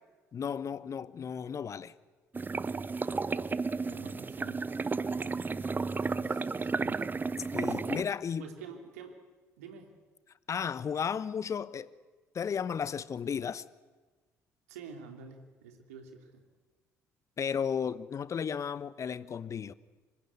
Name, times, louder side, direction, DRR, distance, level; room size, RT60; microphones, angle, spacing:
voice 1, 0.3-1.9 7.5-8.5 10.5-11.9 12.3-13.6 17.4-19.7, left 7 dB, 40° left, 1.1 m, -34 dB
sound 1, 2.3-8.0, right 4 dB, 25° right, 0.8 m, -33 dB
voice 2, 3.8-4.7 5.6-7.1 8.4-9.2 9.6-9.9 14.7-16.4, right 5 dB, 75° right, 3.0 m, -49 dB
26.0 x 21.5 x 9.5 m
figure-of-eight pair, 50°, 8 cm